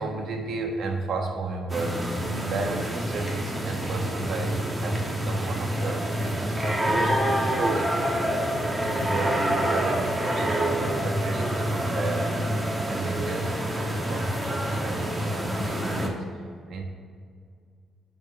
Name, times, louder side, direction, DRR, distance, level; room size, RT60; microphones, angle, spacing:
voice 1, 0.0-2.0 2.5-8.1 8.8-16.8, right 3 dB, 65° right, 3 dB, 1.3 m, -34 dB
sound 1, 1.7-16.1, right 1 dB, 20° right, 1.5 m, -27 dB
9.3 x 5.4 x 5.3 m, 2.1 s
cardioid pair, 90°, 0 cm